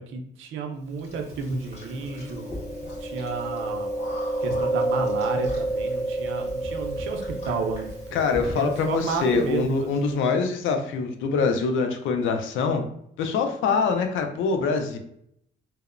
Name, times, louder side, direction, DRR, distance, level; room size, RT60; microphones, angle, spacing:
voice 1, 0.0-2.4 3.0-3.9 4.4-8.2 8.5-9.9, right 4 dB, 85° right, 4 dB, 0.5 m, -31 dB
Chewing mastication, 1.0-10.0, right 2 dB, 35° left, 1.4 m, -30 dB
voice 2, 8.1-12.9 13.2-15.0, left 4 dB, 80° left, 5 dB, 0.4 m, -24 dB
2.8 x 2.0 x 2.4 m, 0.72 s
cardioid pair, 90°, 20 cm